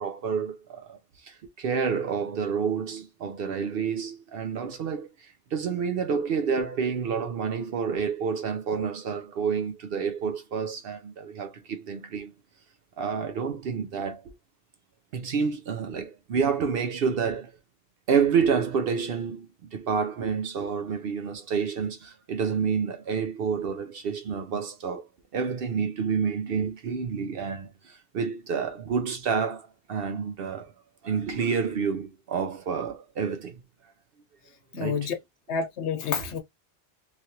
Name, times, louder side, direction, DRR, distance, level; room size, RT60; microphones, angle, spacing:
voice 1, 0.0-12.3 13.0-14.3 15.1-17.5 18.1-25.1 25.3-30.7 31.0-33.6 34.7-35.1, right 6 dB, 65° right, 0.7 m, -29 dB
voice 2, 34.7-35.1 35.5-36.4, left 6 dB, 75° left, 1.1 m, -29 dB
3.1 x 2.5 x 2.7 m
omnidirectional pair, 1.2 m